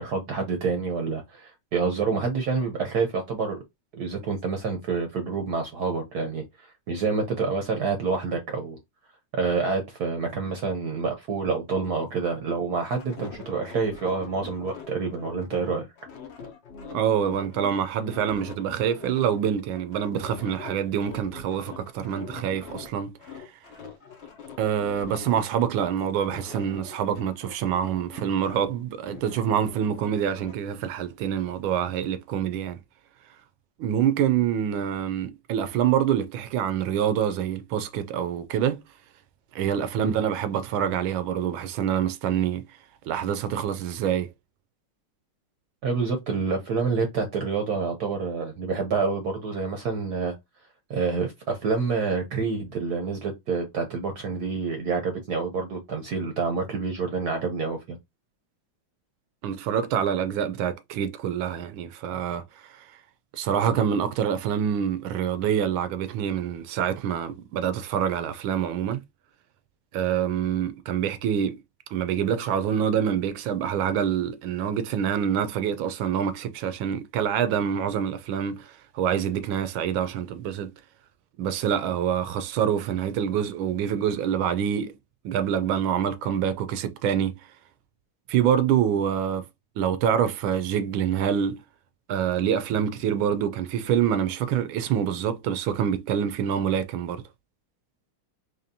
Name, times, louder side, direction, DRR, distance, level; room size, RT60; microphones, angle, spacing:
voice 1, 0.0-3.6 3.9-8.8 9.3-15.9 40.0-40.1 45.8-50.3 50.9-58.0, right 4 dB, 60° right, 1.1 m, -28 dB
sound 1, 12.8-17.7 18.0-22.9 23.2-25.4 25.8-28.8 29.0-30.5, left 5 dB, 65° left, 0.6 m, -43 dB
voice 2, 16.9-23.5 24.6-32.8 33.8-38.8 39.5-42.6 43.1-44.3 59.4-62.9 63.3-69.0 69.9-71.6 71.9-80.7 81.4-85.0 85.2-87.4 88.3-89.5 89.8-91.6 92.1-97.2, right 9 dB, 75° right, 1.3 m, -26 dB
4.2 x 3.1 x 2.7 m
omnidirectional pair, 2.3 m